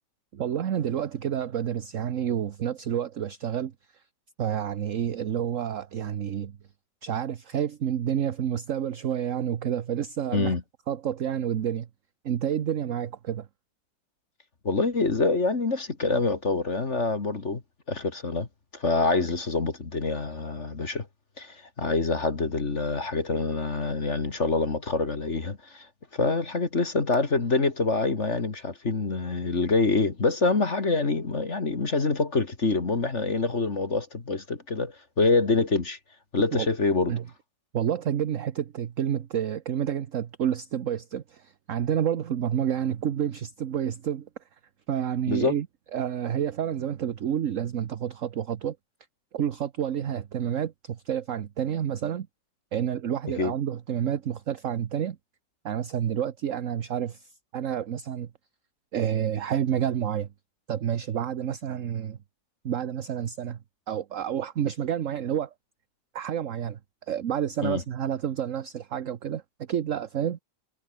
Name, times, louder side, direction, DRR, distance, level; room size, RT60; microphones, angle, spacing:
voice 1, 0.3-4.0 4.4-6.6 7.0-10.5 10.9-11.9 12.2-13.5 36.5-36.7 37.1-37.2 37.7-44.3 44.9-45.7 45.9-48.8 49.3-52.3 52.7-55.2 55.6-58.3 58.9-60.3 60.7-62.2 62.6-63.6 63.9-65.5 66.1-69.4 69.7-70.4, right 9 dB, 50° right, 1.2 m, -29 dB
voice 2, 14.6-17.6 17.9-18.5 18.7-21.1 21.4-25.9 26.1-36.0 36.3-37.1 45.3-45.6 53.4-53.5 67.6-67.8, left 3 dB, 40° left, 2.4 m, -26 dB
omnidirectional pair, 1.9 m